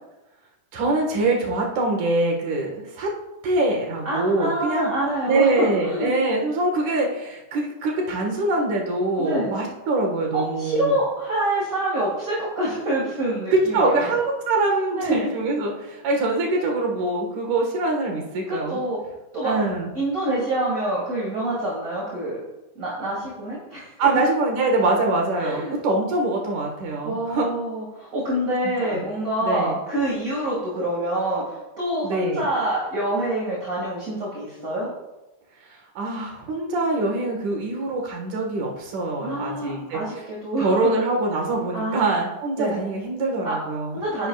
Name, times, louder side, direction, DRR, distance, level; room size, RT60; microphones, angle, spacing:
voice 1, 0.7-3.1 3.4-4.9 5.3-10.9 13.5-18.8 19.4-19.9 24.0-27.5 28.8-29.1 29.4-29.8 32.0-32.5 35.7-40.0 40.6-44.0, right 2 dB, 85° right, 0 dB, 3.1 m, -24 dB
voice 2, 4.0-6.1 9.2-9.5 10.3-14.1 15.0-15.3 18.5-19.0 19.3-19.5 19.9-22.4 22.7-23.9 25.4-25.7 27.0-34.9 39.2-40.9 41.7-42.2 42.6-42.8 43.4-43.6 43.9-44.3, right 1 dB, 30° right, -6 dB, 2.4 m, -26 dB
10.5 x 10.0 x 2.4 m, 0.98 s
omnidirectional pair, 3.4 m